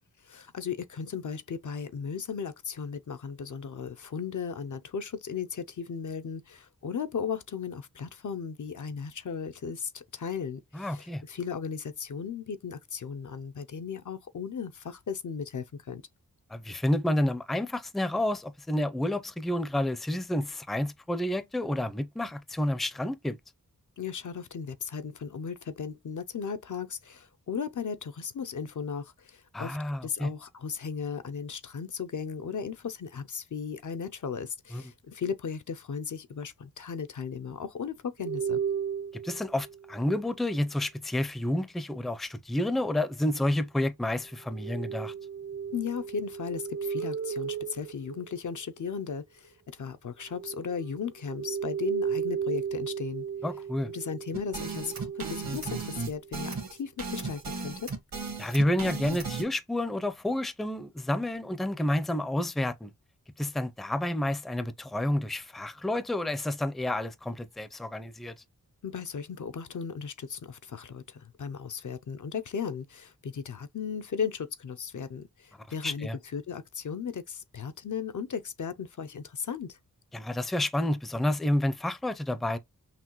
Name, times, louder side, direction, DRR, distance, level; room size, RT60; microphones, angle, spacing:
voice 1, 0.2-16.0 24.0-38.6 45.7-53.3 53.9-57.9 68.8-79.8, left 6 dB, 60° left, 0.5 m, -36 dB
voice 2, 10.7-11.2 16.5-23.4 29.5-30.3 34.7-34.8 39.2-45.1 53.4-53.9 58.4-62.9 63.4-68.4 75.8-76.2 80.1-82.6, left 1 dB, ahead, 0.5 m, -30 dB
sound 1, 38.2-40.1 44.5-48.9 50.3-56.5, right 7 dB, 55° right, 0.5 m, -35 dB
sound 2, 54.3-59.4, right 4 dB, 80° right, 1.4 m, -35 dB
5.9 x 2.3 x 3.0 m
wide cardioid pair, 80°, 35 cm